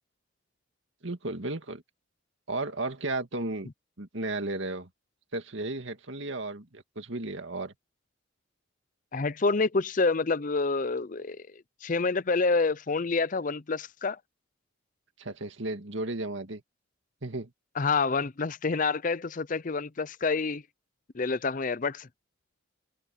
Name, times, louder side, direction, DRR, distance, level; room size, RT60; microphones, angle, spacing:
voice 1, 1.0-1.8 2.5-3.7 4.0-4.9 5.3-7.7 15.2-16.6 17.2-17.5, right 2 dB, 65° right, 2.1 m, -34 dB
voice 2, 9.1-11.5 11.8-14.2 17.8-20.6 21.1-22.1, left 4 dB, 40° left, 0.5 m, -27 dB
head